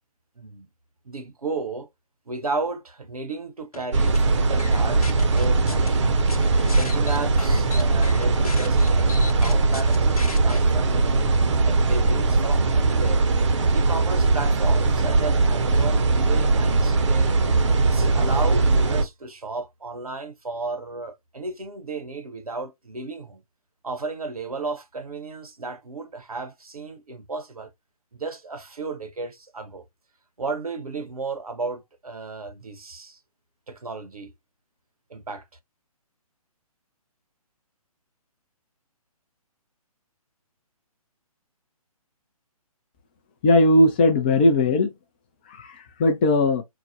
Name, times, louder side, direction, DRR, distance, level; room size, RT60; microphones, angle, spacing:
voice 1, 0.4-0.7 1.0-1.9 2.3-6.1 6.7-9.1 9.4-11.3 11.6-13.2 13.7-17.4 17.8-23.4 23.8-27.7 28.1-29.9 30.4-33.2 33.7-34.3 35.1-35.5, right 3 dB, 70° right, 1.0 m, -34 dB
sound 1, 3.7-4.2 4.6-5.9 6.3-10.6, left 3 dB, 70° left, 0.8 m, -37 dB
sound 2, 3.9-19.0, right 3 dB, 50° right, 0.8 m, -20 dB
voice 2, 43.4-44.9 45.5-46.6, left 1 dB, 15° left, 0.4 m, -18 dB
4.7 x 2.1 x 2.7 m
figure-of-eight pair, 135°, 19 cm